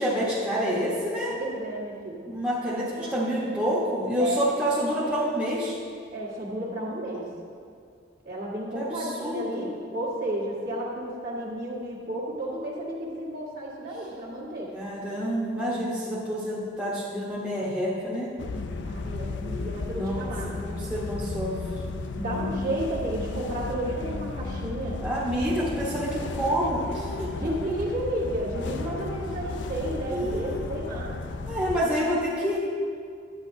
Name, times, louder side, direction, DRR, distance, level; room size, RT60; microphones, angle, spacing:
voice 1, 0.0-1.3 2.3-5.8 8.7-9.7 14.7-18.3 19.9-21.6 25.0-27.3 30.1-30.6 31.5-32.6, equal, 5° right, -8 dB, 1.0 m, -28 dB
voice 2, 1.3-2.2 2.7-3.1 4.2-4.4 6.1-7.2 8.2-14.7 18.8-20.5 22.2-25.0 27.3-31.2, right 1 dB, 45° right, -5 dB, 1.6 m, -32 dB
sound 1, 18.4-31.8, left 3 dB, 60° left, 0.4 m, -34 dB
10.0 x 8.9 x 2.7 m, 2.2 s
head